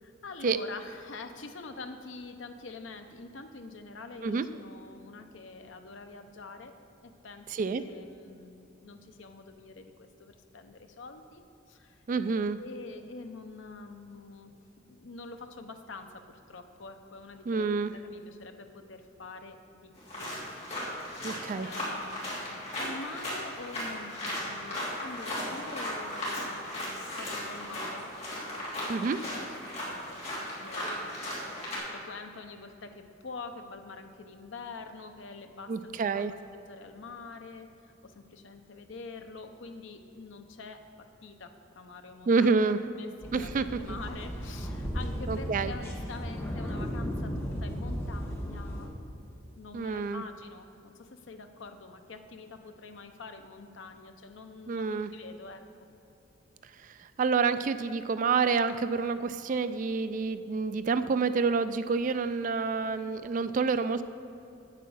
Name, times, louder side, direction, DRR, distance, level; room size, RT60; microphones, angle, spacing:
voice 1, 0.0-12.0 12.6-14.5 14.9-20.3 21.5-28.1 28.5-30.9 31.2-31.3 31.7-36.2 36.5-48.9 49.6-55.6, left 3 dB, 70° left, 7 dB, 0.7 m, -46 dB
voice 2, 7.5-7.8 12.1-12.6 17.5-17.9 21.2-21.7 28.9-29.2 35.7-36.3 42.3-42.8 43.3-44.0 45.3-45.7 49.7-50.2 54.7-55.1 57.2-64.0, right 4 dB, 40° right, 12 dB, 0.3 m, -28 dB
sound 1, 20.0-31.8, left 1 dB, 35° left, 2.7 m, -36 dB
sound 2, 43.2-48.9, equal, 10° left, 1.2 m, -35 dB
8.3 x 8.1 x 6.2 m, 2.9 s
head